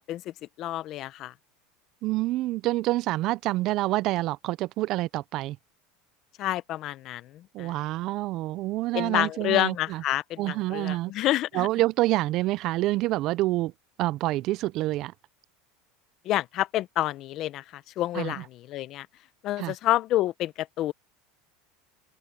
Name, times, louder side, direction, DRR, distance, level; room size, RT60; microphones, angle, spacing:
voice 1, 0.0-1.3 6.4-7.7 8.9-11.7 16.2-19.1 19.4-20.9, left 14 dB, 40° left, 0.8 m, -29 dB
voice 2, 2.0-5.6 7.5-10.0 10.4-11.1 11.5-13.7 14.0-15.1 18.1-18.4 19.6-19.7, right 17 dB, 45° right, 0.4 m, -27 dB
open air
supercardioid pair, 150°, 0 cm